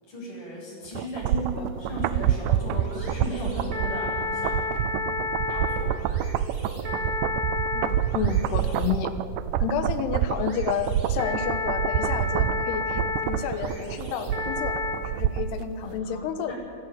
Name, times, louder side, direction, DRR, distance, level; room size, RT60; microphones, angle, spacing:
voice 1, 0.1-4.5 5.5-6.0 15.8-16.6, equal, 55° left, -3 dB, 9.6 m, -36 dB
sound 1, 0.9-15.6 15.9-16.0, right 11 dB, 90° right, 1.8 m, -28 dB
sound 2, 1.7-14.9, left 3 dB, 20° right, 4.5 m, -33 dB
voice 2, 7.7-9.1 9.6-14.8 15.0-16.5, left 7 dB, 90° left, 8 dB, 3.4 m, -30 dB
26.0 x 15.5 x 9.3 m, 2.6 s
omnidirectional pair, 4.6 m